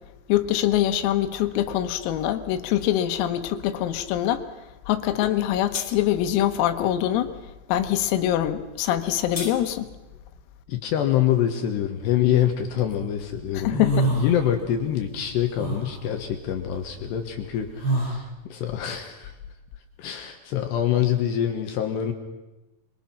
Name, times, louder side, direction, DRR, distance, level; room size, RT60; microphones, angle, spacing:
voice 1, 0.3-4.4 4.9-7.3 7.7-9.9 13.6-14.0, left 12 dB, 85° left, 9 dB, 3.9 m, -24 dB
sound 1, 5.2-5.4 5.7-5.9 8.9-9.6, left 4 dB, 30° left, 1.3 m, -34 dB
voice 2, 10.7-13.8 14.1-18.2 18.5-19.4 20.0-22.1, left 10 dB, 70° left, 5 dB, 3.0 m, -25 dB
sound 2, 12.1-12.9 13.3-14.9 15.1-18.2, right 1 dB, 50° right, 8.6 m, -27 dB
26.0 x 23.5 x 5.9 m, 1.0 s
omnidirectional pair, 6.0 m